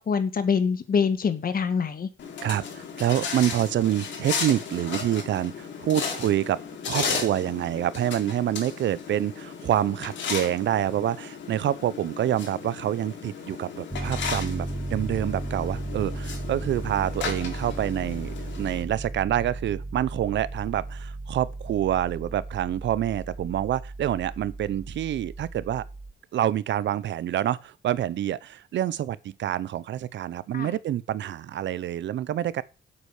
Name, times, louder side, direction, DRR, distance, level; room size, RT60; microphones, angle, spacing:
voice 1, 0.0-2.1 30.5-30.7, left 6 dB, 45° left, 1.8 m, -25 dB
sound 1, 2.2-18.8, left 6 dB, 65° left, 3.8 m, -35 dB
voice 2, 2.4-25.8 26.3-32.6, right 11 dB, 65° right, 0.8 m, -27 dB
Piano, 13.9-26.1, right 2 dB, 10° right, 1.0 m, -35 dB
8.2 x 8.1 x 6.6 m
cardioid pair, 90°, 20 cm